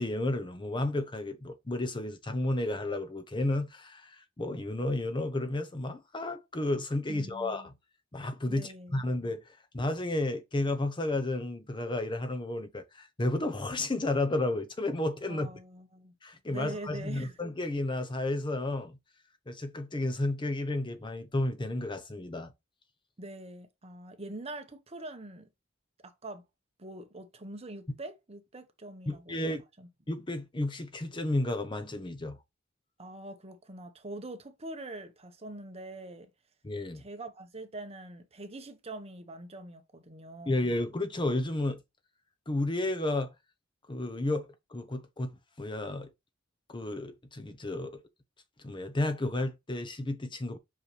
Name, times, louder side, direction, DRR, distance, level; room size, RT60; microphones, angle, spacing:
voice 1, 0.0-7.7 8.1-15.5 16.2-19.0 19.5-22.5 29.1-29.6 30.1-32.4 36.6-37.0 40.5-41.8 42.5-43.3 43.9-46.1 46.7-48.0 48.6-50.6, left 2 dB, 25° left, 0.7 m, -32 dB
voice 2, 7.1-7.7 8.5-9.0 15.3-16.1 16.5-17.4 23.2-25.5 26.0-26.4 26.8-29.9 33.0-36.3 36.9-40.7, right 2 dB, 30° right, 1.1 m, -44 dB
5.6 x 5.4 x 3.3 m
head